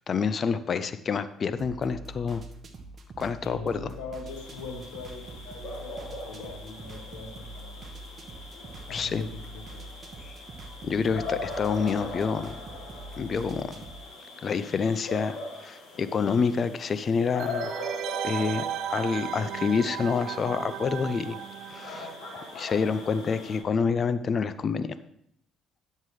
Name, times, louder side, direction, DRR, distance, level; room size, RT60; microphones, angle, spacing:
voice 1, 0.1-2.4 3.2-3.9 8.9-9.2 10.2-10.3 10.8-12.6 13.2-13.8 14.4-17.7 18.2-21.4 21.7-22.1 22.5-24.9, left 5 dB, 45° left, 13 dB, 0.5 m, -28 dB
sound 1, 1.5-14.0, right 2 dB, 45° right, 1.2 m, -45 dB
voice 2, 3.4-7.9 8.9-9.3 9.5-9.9, left 4 dB, 90° left, 2 dB, 1.2 m, -42 dB
sound 2, 4.3-23.6, left 2 dB, 70° left, 3.5 m, -41 dB
sound 3, 17.4-22.9 23.1-23.2, right 11 dB, 70° right, 0.4 m, -36 dB
10.5 x 7.4 x 3.2 m, 0.70 s
supercardioid pair, 80°, 0 cm